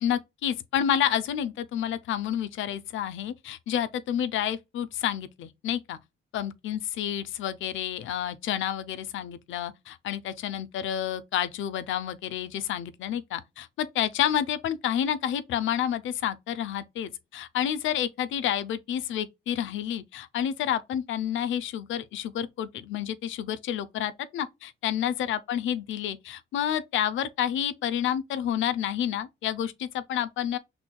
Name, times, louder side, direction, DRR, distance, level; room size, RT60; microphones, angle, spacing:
voice 1, 0.0-6.0 6.3-30.6, left 10 dB, 80° left, 0.7 m, -29 dB
6.2 x 3.4 x 2.2 m
cardioid pair, 90°, 20 cm